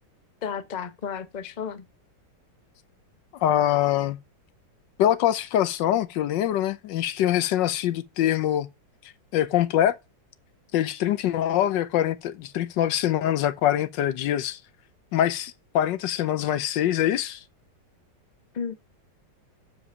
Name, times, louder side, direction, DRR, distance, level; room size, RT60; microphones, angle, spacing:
voice 1, 0.4-1.9 18.5-18.7, left 7 dB, 50° left, 0.5 m, -33 dB
voice 2, 3.4-4.2 5.0-8.7 9.3-10.0 10.7-14.6 15.1-17.4, left 11 dB, 85° left, 1.4 m, -24 dB
7.2 x 5.0 x 5.4 m
omnidirectional pair, 2.0 m